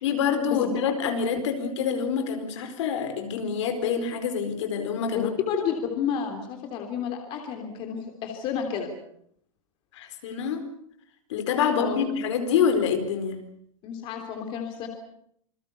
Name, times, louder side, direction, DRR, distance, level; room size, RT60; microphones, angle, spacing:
voice 1, 0.0-5.3 9.9-10.6 11.3-13.4, left 7 dB, 55° left, 8 dB, 4.4 m, -26 dB
voice 2, 5.1-8.9 11.8-12.0 13.8-14.9, left 7 dB, 30° left, 4 dB, 3.2 m, -30 dB
27.5 x 22.0 x 6.9 m, 0.69 s
supercardioid pair, 165°, 18 cm